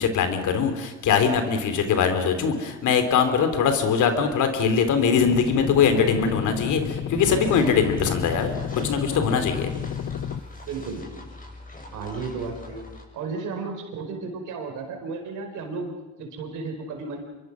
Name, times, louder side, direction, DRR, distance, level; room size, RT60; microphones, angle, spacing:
voice 1, 0.0-9.7, left 6 dB, 80° left, 8 dB, 3.2 m, -22 dB
sound 1, 5.2-10.4, left 8 dB, 55° left, 1.0 m, -31 dB
sound 2, 7.1-13.0, left 2 dB, 30° left, 7.4 m, -41 dB
voice 2, 10.7-11.1 11.9-12.9 13.1-17.2, right 4 dB, 90° right, 4 dB, 4.8 m, -33 dB
26.0 x 23.0 x 6.3 m, 1.1 s
cardioid pair, 90°, 30 cm